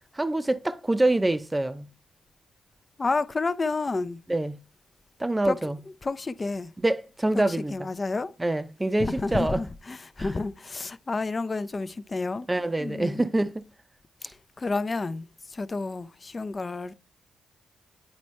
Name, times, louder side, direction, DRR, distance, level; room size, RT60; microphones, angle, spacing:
voice 1, 0.2-1.9 4.3-4.6 5.2-5.8 6.8-7.7 8.4-9.6 10.2-10.3 12.5-13.6, right 2 dB, 15° right, 0.6 m, -25 dB
voice 2, 3.0-4.2 5.4-5.6 6.0-6.7 7.3-8.3 9.0-12.5 12.8-13.3 14.6-16.9, left 3 dB, 35° left, 0.5 m, -30 dB
9.5 x 4.2 x 3.2 m
supercardioid pair, 60°, 0 cm